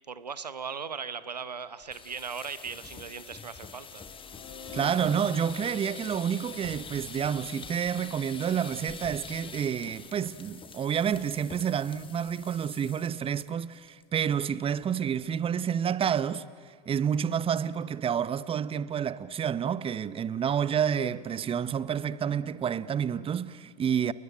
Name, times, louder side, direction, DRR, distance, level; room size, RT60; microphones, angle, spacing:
voice 1, 0.1-4.0, right 6 dB, 90° right, 1.0 m, -38 dB
sound 1, 1.8-13.4 13.7-14.0 14.3-14.4 14.8-15.2, left 6 dB, 25° left, 2.0 m, -45 dB
sound 2, 3.7-7.8, left 7 dB, 70° left, 4.4 m, -47 dB
voice 2, 4.7-16.5 16.9-24.1, right 8 dB, 25° right, 1.0 m, -29 dB
30.0 x 20.5 x 9.3 m
hypercardioid pair, 75°, 20 cm